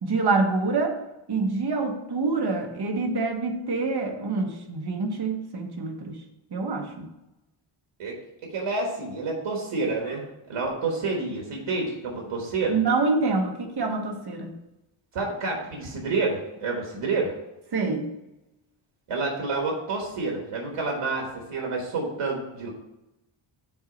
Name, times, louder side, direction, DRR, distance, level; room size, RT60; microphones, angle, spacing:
voice 1, 0.0-1.0 1.3-6.2 6.5-7.1 12.7-14.5 17.7-18.1, right 3 dB, 50° right, 3 dB, 1.1 m, -26 dB
voice 2, 8.5-12.8 15.1-17.3 19.1-22.7, right 3 dB, 85° right, -1 dB, 1.4 m, -29 dB
6.1 x 3.9 x 5.0 m, 0.95 s
wide cardioid pair, 150°, 50 cm